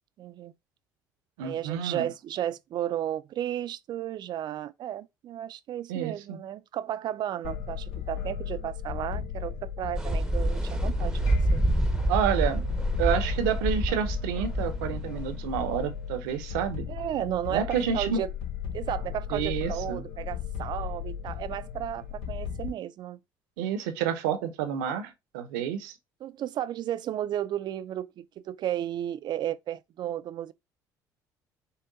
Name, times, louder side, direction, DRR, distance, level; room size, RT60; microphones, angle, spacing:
voice 1, 0.2-0.5 1.4-11.6 16.9-18.3 18.7-23.2 26.2-30.5, right 11 dB, 55° right, 0.4 m, -33 dB
voice 2, 1.4-2.1 5.9-6.4 12.1-12.7 13.0-16.9 17.5-18.2 19.3-20.0 23.6-25.9, right 8 dB, 85° right, 0.8 m, -29 dB
sound 1, 7.4-22.7, left 8 dB, 75° left, 0.9 m, -36 dB
sound 2, 9.9-16.6, right 1 dB, 5° right, 0.8 m, -27 dB
5.6 x 2.2 x 3.9 m
supercardioid pair, 75°, 9 cm